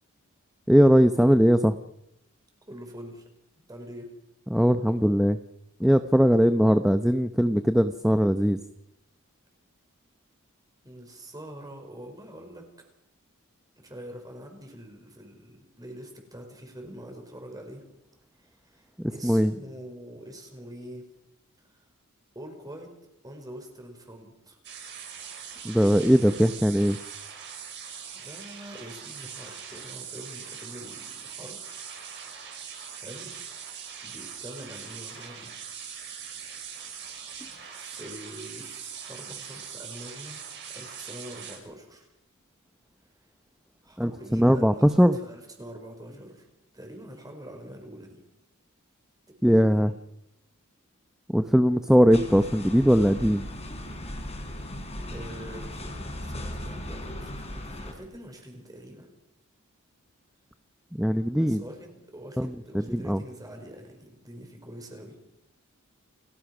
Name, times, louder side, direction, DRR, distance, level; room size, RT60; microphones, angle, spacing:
voice 1, 0.7-1.7 4.5-5.4 5.8-8.6 19.0-19.5 25.6-27.0 44.0-45.2 49.4-49.9 51.3-53.5 60.9-61.6 62.4-63.2, equal, ahead, 9 dB, 0.7 m, -20 dB
voice 2, 2.7-3.2 3.7-4.1 10.8-12.7 13.8-17.8 18.6-21.1 22.4-22.9 23.2-24.6 28.1-31.6 33.0-33.3 34.0-35.5 37.7-40.4 40.7-42.1 43.8-46.4 46.7-48.2 49.4-50.0 55.1-59.1 61.3-65.2, right 1 dB, 20° right, 3 dB, 5.5 m, -44 dB
sound 1, 24.6-41.6, right 7 dB, 55° right, 6.5 m, -41 dB
sound 2, 52.1-57.9, left 1 dB, 30° left, 4.7 m, -37 dB
29.5 x 18.0 x 6.2 m, 0.86 s
head